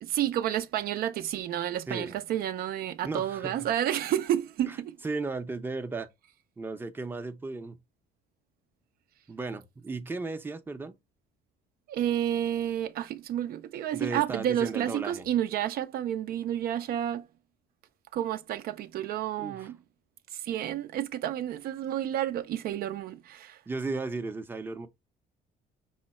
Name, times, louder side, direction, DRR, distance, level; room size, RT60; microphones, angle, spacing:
voice 1, 0.0-4.9 11.9-17.3 18.1-19.8 20.3-23.6, right 11 dB, 60° right, 0.4 m, -30 dB
voice 2, 1.9-2.2 3.0-3.7 4.7-4.8 5.0-6.1 6.6-7.8 9.3-10.9 13.9-15.3 19.4-19.7 23.7-24.9, right 3 dB, 10° right, 0.5 m, -35 dB
5.5 x 2.0 x 4.1 m
cardioid pair, 110°, 17 cm